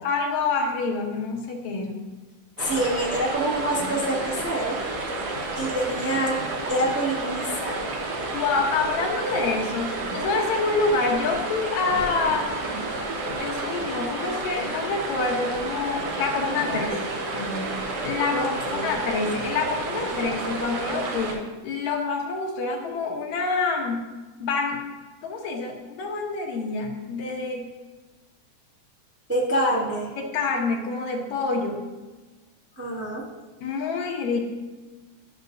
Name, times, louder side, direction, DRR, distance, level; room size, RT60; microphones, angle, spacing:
voice 1, 0.0-2.1 8.3-12.5 13.4-17.0 17.3-24.0 24.4-24.8 25.2-27.7 30.2-31.9 33.6-34.4, left 4 dB, 70° left, 1 dB, 2.1 m, -27 dB
voice 2, 2.6-4.8 5.5-6.4 6.7-7.9 18.3-18.9 29.3-30.1 32.8-33.2, right 1 dB, 10° right, -5 dB, 0.8 m, -26 dB
sound 1, 2.6-21.3, right 2 dB, 65° right, 1.7 m, -30 dB
12.0 x 6.5 x 2.6 m, 1.2 s
omnidirectional pair, 3.6 m